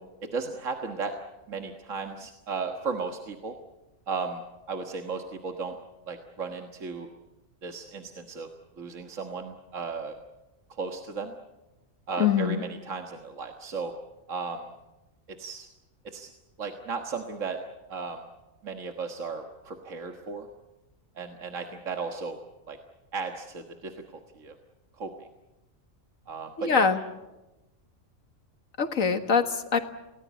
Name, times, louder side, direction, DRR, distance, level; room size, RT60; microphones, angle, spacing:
voice 1, 0.3-1.1 1.5-3.6 4.1-4.4 4.7-5.8 6.1-7.1 7.6-8.5 8.8-10.2 10.7-11.4 12.1-13.9 14.3-14.7 15.4-15.7 16.0-16.3 16.6-17.6 17.9-18.2 18.6-20.5 21.2-22.4 22.7-22.8 23.1-23.9 24.4-24.6 25.0-25.3 26.3-26.9, right 4 dB, 75° right, 4 dB, 1.9 m, -35 dB
voice 2, 12.2-12.6 26.6-27.0 28.8-29.8, left 6 dB, 90° left, 7 dB, 2.0 m, -23 dB
28.5 x 18.5 x 8.3 m, 1.0 s
omnidirectional pair, 1.3 m